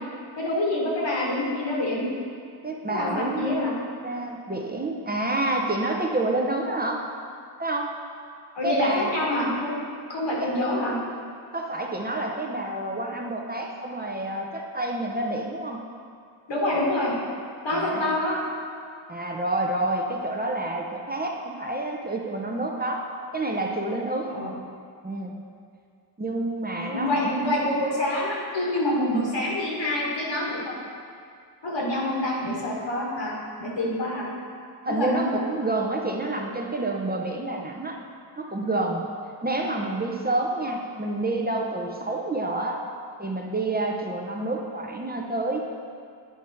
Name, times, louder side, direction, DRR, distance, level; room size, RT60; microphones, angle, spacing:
voice 1, 0.4-2.1 2.9-3.7 8.6-9.8 10.1-11.0 16.5-17.1 17.6-18.4 24.3-24.5 26.9-30.8 31.6-33.3 33.6-34.3 34.9-35.2 38.6-38.7, left 1 dB, 85° left, -4 dB, 2.0 m, -26 dB
voice 2, 2.6-3.5 4.0-7.0 7.6-7.9 8.6-9.2 10.4-10.5 11.5-15.8 17.7-18.1 19.1-23.0 23.3-24.3 25.0-25.3 26.2-27.5 34.8-38.0 38.4-39.1 39.4-42.8 43.2-45.6, right 2 dB, 20° right, 0 dB, 0.6 m, -28 dB
9.3 x 5.0 x 4.3 m, 2.3 s
wide cardioid pair, 125°, 43 cm